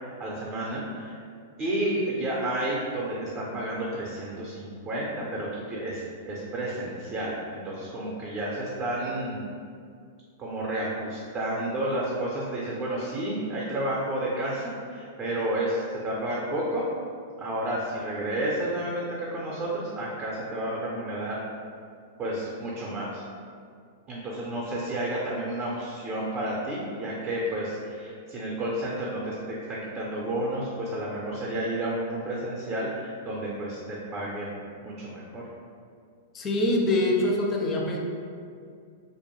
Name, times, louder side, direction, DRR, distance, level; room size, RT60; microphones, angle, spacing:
voice 1, 0.2-1.2 1.6-9.4 10.4-16.9 17.4-21.4 22.2-23.2 24.1-35.4, right 1 dB, 30° right, -4 dB, 0.5 m, -31 dB
voice 2, 36.3-38.0, left 1 dB, 25° left, -1 dB, 0.4 m, -24 dB
2.5 x 2.1 x 2.9 m, 2.2 s
hypercardioid pair, 125°, 0 cm